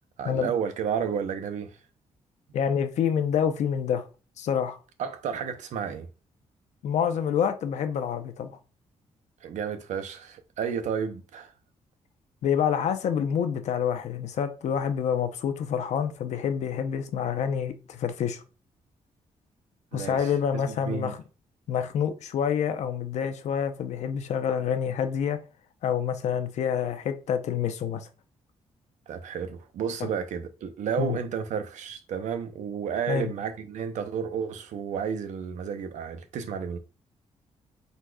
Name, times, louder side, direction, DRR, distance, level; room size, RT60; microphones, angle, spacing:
voice 1, 0.2-1.8 5.0-6.1 9.4-11.5 19.9-21.1 29.1-36.8, right 7 dB, 85° right, 0.7 m, -32 dB
voice 2, 2.5-4.0 4.4-4.8 6.8-8.6 12.4-18.4 19.9-21.2 21.7-25.4 25.8-28.1 30.0-30.1 31.0-31.2 33.1-33.3, left 8 dB, 70° left, 0.6 m, -27 dB
4.7 x 4.0 x 2.3 m
wide cardioid pair, 175°, 12 cm